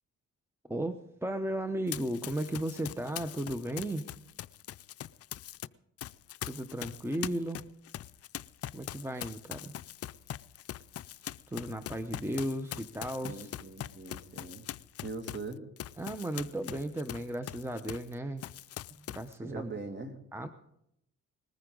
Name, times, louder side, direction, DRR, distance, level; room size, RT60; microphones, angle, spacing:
voice 1, 0.7-4.1 6.4-7.6 8.7-9.7 11.5-13.5 16.0-18.5 19.1-19.7 20.3-20.5, right 1 dB, 10° right, 9 dB, 0.8 m, -35 dB
Run, 1.9-5.7 6.0-18.1 18.4-19.3, left 12 dB, 50° left, 0.5 m, -42 dB
voice 2, 13.2-14.7 15.0-15.6 19.4-20.2, right 3 dB, 35° right, 6 dB, 2.3 m, -41 dB
20.0 x 14.5 x 3.9 m, 0.77 s
cardioid pair, 90°, 30 cm